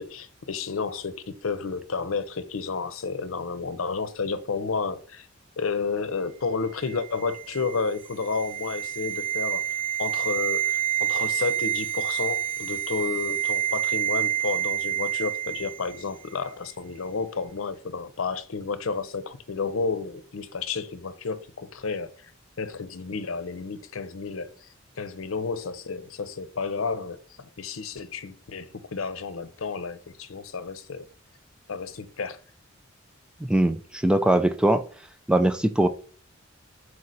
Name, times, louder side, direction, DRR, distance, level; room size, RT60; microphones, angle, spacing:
voice 1, 0.0-5.3 5.6-9.7 10.0-22.3 22.6-24.7 25.0-31.1 31.7-32.4, left 4 dB, 85° left, 0.7 m, -31 dB
sound 1, 6.8-16.1 16.3-16.5, right 11 dB, 35° right, 1.0 m, -28 dB
voice 2, 33.4-34.8 35.3-35.9, right 1 dB, 5° right, 0.4 m, -21 dB
6.2 x 4.8 x 4.1 m
head